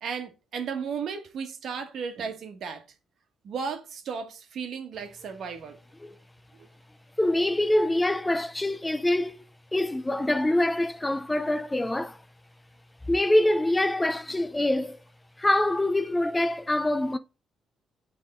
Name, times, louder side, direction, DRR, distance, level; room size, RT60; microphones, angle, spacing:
voice 1, 0.0-2.8 3.4-5.8 6.5-6.7, right 6 dB, 65° right, 1.2 m, -35 dB
voice 2, 7.2-9.4 9.7-12.2 13.1-15.0 15.4-17.2, left 1 dB, 15° left, 0.5 m, -25 dB
8.4 x 3.5 x 3.7 m
cardioid pair, 90°, 0 cm